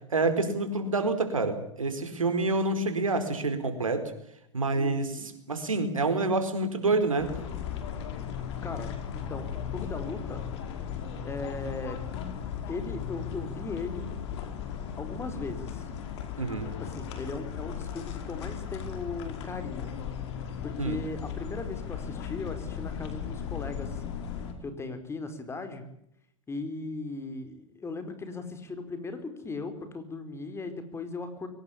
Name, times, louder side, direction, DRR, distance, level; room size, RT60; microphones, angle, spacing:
voice 1, 0.1-4.0 4.5-5.1 5.5-7.3 16.4-16.7 20.8-21.0, right 3 dB, 90° right, 9 dB, 4.6 m, -27 dB
voice 2, 4.7-5.3 8.6-10.4 11.2-12.0 12.7-14.1 14.8-15.8 16.6-19.9 20.6-24.0 24.6-25.8 26.5-31.5, left 3 dB, 15° left, 8 dB, 4.7 m, -38 dB
sound 1, 7.2-24.5, left 8 dB, 55° left, 5.4 m, -37 dB
23.0 x 19.5 x 8.6 m, 0.74 s
hypercardioid pair, 105°, 17 cm